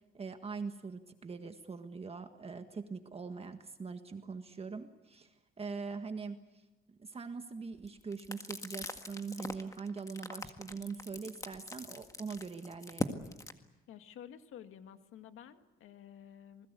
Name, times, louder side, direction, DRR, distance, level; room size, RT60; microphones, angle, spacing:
voice 1, 0.1-6.6 6.9-13.2, right 4 dB, 30° right, 7 dB, 1.6 m, -42 dB
sound 1, 7.8-13.5, left 2 dB, 15° left, 1.8 m, -41 dB
voice 2, 13.9-16.7, left 9 dB, 80° left, 8 dB, 1.9 m, -51 dB
28.0 x 21.0 x 8.4 m, 1.0 s
cardioid pair, 125°, 21 cm